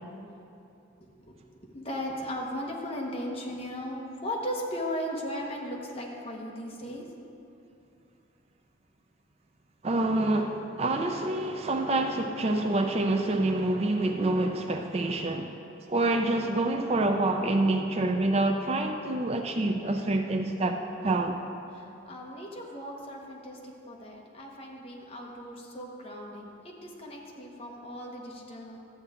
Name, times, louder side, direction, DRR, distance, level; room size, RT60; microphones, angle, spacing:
voice 1, 1.7-7.1 21.7-28.8, equal, 30° left, -1 dB, 1.1 m, -37 dB
voice 2, 9.8-15.5 15.9-21.4, right 2 dB, 35° right, 5 dB, 0.4 m, -27 dB
12.5 x 7.9 x 3.6 m, 2.7 s
head